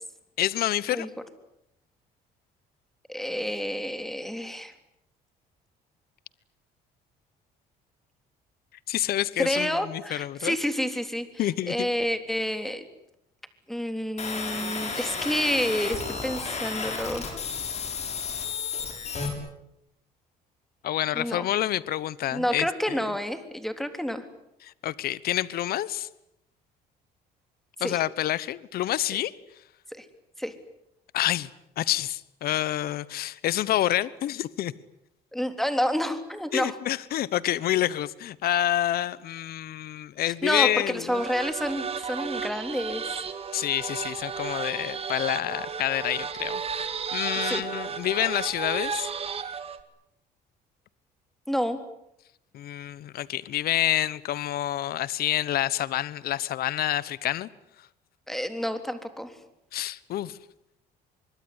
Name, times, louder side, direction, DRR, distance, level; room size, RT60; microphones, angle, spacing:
voice 1, 0.4-1.1 8.9-10.5 11.4-11.9 20.8-23.0 24.6-26.1 27.8-29.3 31.1-31.5 31.8-34.7 36.5-41.2 43.5-49.1 52.5-57.5 59.7-60.4, left 13 dB, 65° left, 20 dB, 1.1 m, -28 dB
voice 2, 3.1-4.7 9.4-11.3 11.7-12.8 13.7-17.3 21.1-21.5 22.3-24.3 27.8-28.0 29.9-30.0 30.4-30.5 35.3-36.8 40.2-43.1 47.4-47.7 51.5-51.8 58.3-59.3, equal, ahead, 9 dB, 3.5 m, -29 dB
sound 1, 14.2-19.3, left 5 dB, 40° left, 7.5 m, -32 dB
sound 2, 41.1-49.8, right 6 dB, 35° right, 2.5 m, -33 dB
25.0 x 22.5 x 9.8 m, 0.82 s
cardioid pair, 110°, 17 cm